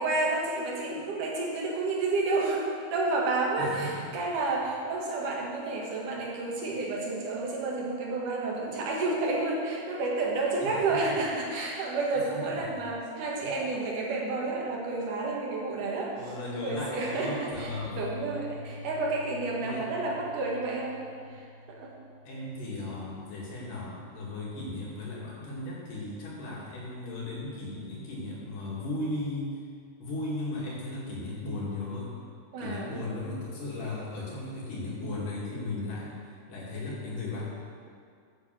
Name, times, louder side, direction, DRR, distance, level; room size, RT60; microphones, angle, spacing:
voice 1, 0.0-16.1 16.6-21.0 21.4-21.9 32.5-32.9, right 3 dB, 70° right, -2 dB, 3.1 m, -30 dB
voice 2, 3.6-4.0 10.6-11.0 12.3-12.7 13.4-13.5 16.1-18.0 19.6-19.8 22.2-29.5 30.0-32.2 32.6-36.1 36.5-37.4, left 2 dB, 75° left, -6 dB, 4.1 m, -36 dB
sound 1, 17.5-24.6 24.9-25.0 25.3-25.4, left 1 dB, 20° left, 2.4 m, -46 dB
8.8 x 7.4 x 7.5 m, 2.2 s
omnidirectional pair, 3.8 m